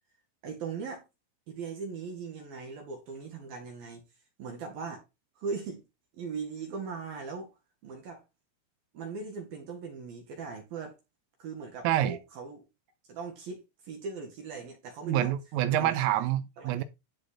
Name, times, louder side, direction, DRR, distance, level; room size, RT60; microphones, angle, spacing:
voice 1, 0.4-1.0 1.5-4.0 4.4-5.0 5.4-5.8 6.1-7.5 7.8-8.2 8.9-11.0 11.4-12.6 13.1-15.3 15.7-16.1 16.6-16.8, right 5 dB, 55° right, 3.4 m, -39 dB
voice 2, 11.9-12.2 15.1-16.8, right 12 dB, 90° right, 3.6 m, -27 dB
13.5 x 5.0 x 4.3 m
omnidirectional pair, 6.0 m